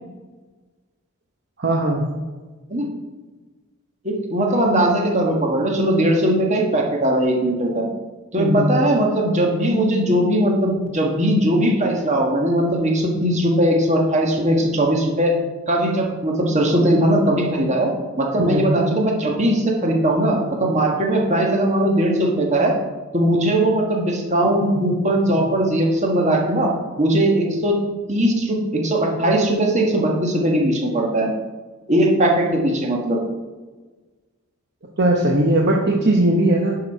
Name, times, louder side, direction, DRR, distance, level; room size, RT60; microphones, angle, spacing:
voice 1, 1.6-2.1 8.4-8.7 18.4-18.6 35.0-36.7, right 1 dB, 50° right, 0 dB, 1.0 m, -18 dB
voice 2, 4.0-7.9 8.3-15.3 15.7-17.9 18.2-22.7 23.1-26.7 27.0-27.7 28.1-31.3 31.9-33.2, right 1 dB, 35° right, 0 dB, 1.5 m, -19 dB
10.5 x 5.9 x 4.6 m, 1.3 s
head